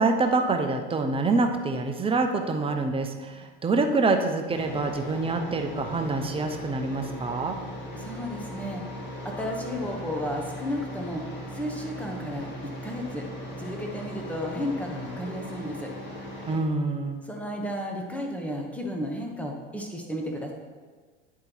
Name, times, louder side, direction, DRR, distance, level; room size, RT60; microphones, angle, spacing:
voice 1, 0.0-7.6 16.5-17.2, right 3 dB, 20° right, 4 dB, 0.8 m, -26 dB
sound 1, 4.5-16.6, left 1 dB, 40° left, 2.0 m, -38 dB
voice 2, 7.9-8.8 9.2-11.3 11.5-12.5 12.8-13.2 13.6-15.9 17.2-20.5, equal, 5° left, 0 dB, 1.3 m, -33 dB
9.5 x 3.7 x 4.6 m, 1.4 s
supercardioid pair, 95°, 29 cm